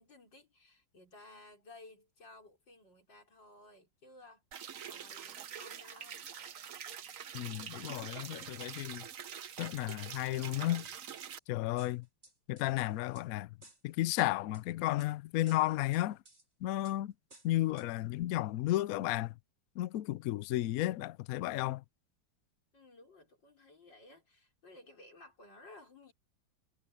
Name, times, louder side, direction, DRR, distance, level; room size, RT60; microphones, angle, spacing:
voice 1, 0.0-4.4 4.8-6.3 22.7-26.1, left 2 dB, 65° left, 6.1 m, -57 dB
sound 1, 4.5-11.4, right 8 dB, 50° right, 1.1 m, -45 dB
voice 2, 7.3-9.1 9.6-10.9 11.5-12.1 12.5-13.5 13.8-16.2 16.6-17.1 17.4-19.3 19.8-21.8, left 16 dB, 85° left, 0.7 m, -33 dB
sound 2, 11.2-11.4 11.8-13.3 13.6-14.2 14.5-15.1 15.5-16.5 16.8-17.0 17.3-17.9 18.2-18.3, right 1 dB, 35° right, 7.0 m, -59 dB
omnidirectional pair, 2.1 m